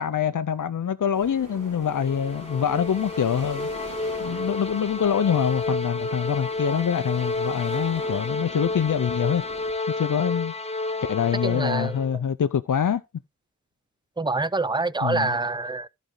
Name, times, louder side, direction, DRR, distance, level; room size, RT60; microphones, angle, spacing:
voice 1, 0.0-3.7 4.2-9.6 10.0-10.5 11.1-13.0 15.0-15.3, left 8 dB, 80° left, 0.5 m, -25 dB
sound 1, 1.1-9.7, right 2 dB, 85° right, 2.8 m, -44 dB
sound 2, 1.6-12.2, left 2 dB, 20° left, 0.8 m, -31 dB
voice 2, 11.4-12.0 14.2-15.9, right 3 dB, 15° right, 0.4 m, -26 dB
14.0 x 5.1 x 3.1 m
wide cardioid pair, 60°, 30 cm